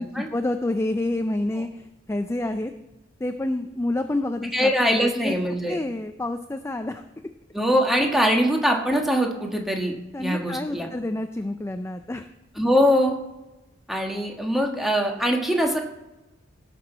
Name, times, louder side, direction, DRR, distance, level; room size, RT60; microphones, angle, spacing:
voice 1, 0.0-2.7 3.2-5.3 5.7-7.0 10.1-12.3, left 1 dB, 15° left, 8 dB, 0.4 m, -28 dB
voice 2, 4.5-5.8 7.5-10.9 12.6-13.1 13.9-15.8, equal, ahead, 1 dB, 1.4 m, -22 dB
17.0 x 6.1 x 4.5 m, 0.99 s
head